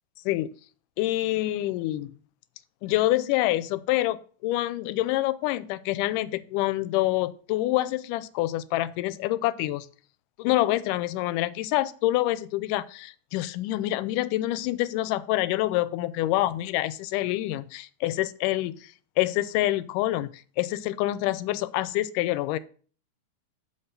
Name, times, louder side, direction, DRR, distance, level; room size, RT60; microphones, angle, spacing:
voice 1, 1.0-2.1 2.8-9.9 10.4-22.6, left 16 dB, 85° left, 2.1 m, -27 dB
6.0 x 5.6 x 6.7 m
omnidirectional pair, 3.7 m